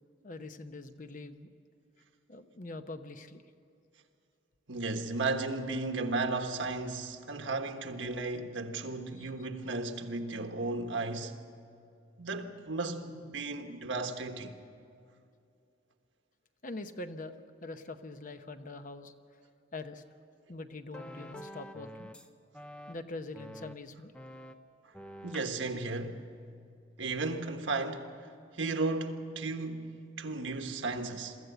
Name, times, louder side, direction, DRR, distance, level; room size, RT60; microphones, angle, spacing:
voice 1, 0.2-1.5 2.3-3.4 9.2-9.3 16.6-19.1 19.7-20.0 20.5-22.1 22.9-24.1, left 2 dB, 40° left, 0.9 m, -43 dB
voice 2, 4.7-11.4 12.2-14.6 25.2-26.2 27.0-28.1 28.5-31.4, right 3 dB, 75° right, 1.4 m, -34 dB
sound 1, 20.7-22.3 22.5-22.9 23.3-23.7 24.1-24.5 24.9-25.5, equal, 5° left, 0.7 m, -47 dB
23.0 x 14.5 x 8.1 m
head